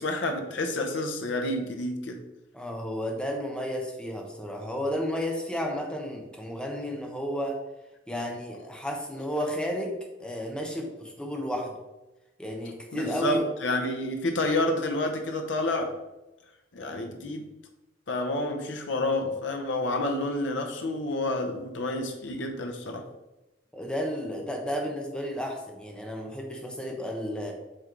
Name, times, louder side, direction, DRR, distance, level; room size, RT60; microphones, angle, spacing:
voice 1, 0.0-2.2 12.9-16.0 16.7-17.5 18.1-23.1, left 1 dB, 75° left, 4 dB, 0.8 m, -29 dB
voice 2, 2.5-7.6 8.1-11.7 12.4-13.4 23.7-27.5, equal, 5° left, 1 dB, 0.9 m, -32 dB
7.6 x 3.2 x 3.8 m, 1.0 s
head